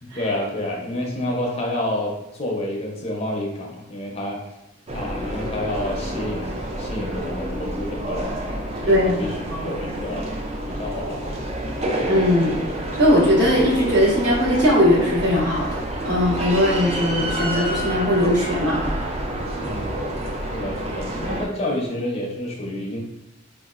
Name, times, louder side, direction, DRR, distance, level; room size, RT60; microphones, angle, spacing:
voice 1, 0.0-4.4 4.9-10.3 10.7-11.5 19.6-20.0 20.5-23.0, left 1 dB, 30° left, -2 dB, 0.5 m, -29 dB
sound 1, 4.9-21.5, right 1 dB, 30° right, 0.3 m, -28 dB
voice 2, 8.9-9.7 12.0-12.5 12.9-15.7 16.0-18.8, left 1 dB, 55° right, -7 dB, 1.2 m, -19 dB
3.8 x 2.3 x 2.3 m, 0.97 s
head